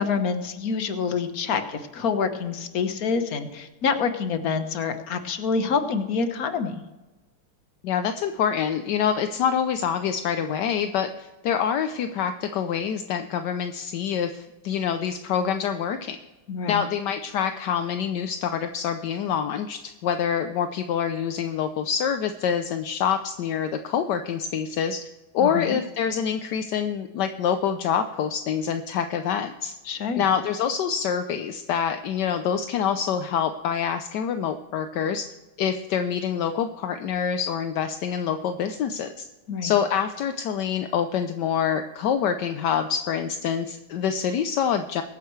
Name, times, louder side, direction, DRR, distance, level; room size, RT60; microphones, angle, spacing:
voice 1, 0.0-6.8 16.5-16.8 25.4-25.8 29.9-30.2 39.5-39.7, left 5 dB, 50° left, 8 dB, 1.4 m, -27 dB
voice 2, 7.8-16.2 16.7-25.0 25.3-29.7 30.2-35.2 35.6-39.3 39.6-45.0, left 8 dB, 70° left, 8 dB, 1.1 m, -26 dB
22.5 x 9.4 x 3.2 m, 1.1 s
omnidirectional pair, 2.4 m